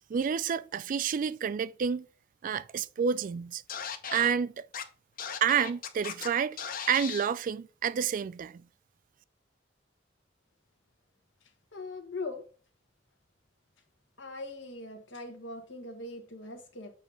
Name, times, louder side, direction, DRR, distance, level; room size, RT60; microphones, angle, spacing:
voice 1, 0.1-2.1 2.4-3.6 4.1-4.7 5.4-6.6 6.9-8.6, right 7 dB, 45° right, 0.3 m, -29 dB
Scratching (performance technique), 3.7-4.3 4.7-4.8 5.2-6.3 6.6-7.3, left 7 dB, 50° left, 0.6 m, -37 dB
voice 2, 11.4-12.4 14.2-16.9, left 2 dB, 85° left, 1.4 m, -41 dB
7.2 x 2.8 x 5.5 m
head